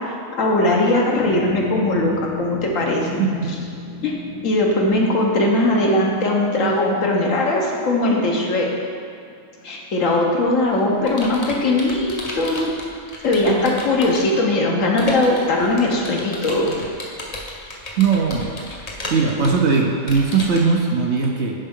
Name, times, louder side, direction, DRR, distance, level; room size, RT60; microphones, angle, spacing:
voice 1, 0.4-3.2 4.0-4.2 4.4-8.7 9.6-12.7 13.2-16.7, left 2 dB, 70° left, -1 dB, 1.3 m, -19 dB
sound 1, 1.2-10.2 10.6-10.7, left 3 dB, 85° right, 2.0 m, -36 dB
voice 2, 3.2-3.5 18.0-18.5 19.1-21.5, right 5 dB, 60° right, 1 dB, 0.8 m, -19 dB
Computer keyboard, 10.3-14.4 15.0-20.7, left 1 dB, 35° left, 0.7 m, -34 dB
10.5 x 4.2 x 3.6 m, 2.4 s
omnidirectional pair, 1.5 m